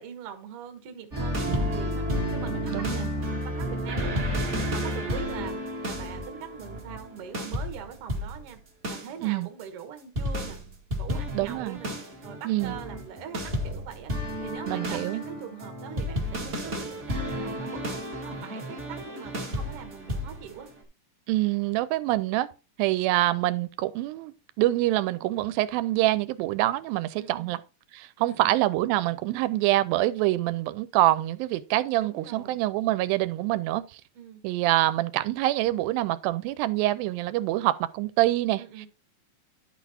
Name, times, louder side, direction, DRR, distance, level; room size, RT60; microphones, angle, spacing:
voice 1, 0.0-2.0 2.3-3.1 3.4-4.2 4.7-8.6 8.9-10.6 11.0-12.0 12.2-14.1 14.4-18.0 18.2-20.7 27.2-27.5 28.2-28.6 32.0-32.6 34.1-34.4 38.6-38.9, right 8 dB, 55° right, 1.7 m, -42 dB
sound 1, 1.1-8.5 8.8-9.1 10.2-20.7, equal, 40° right, 1.0 m, -31 dB
voice 2, 2.7-3.1 9.2-9.5 11.3-11.8 12.5-12.8 14.7-15.2 21.3-22.5 22.8-24.3 24.6-27.6 27.9-34.0 34.4-38.6, right 16 dB, 85° right, 2.3 m, -25 dB
11.0 x 4.1 x 4.2 m
omnidirectional pair, 4.1 m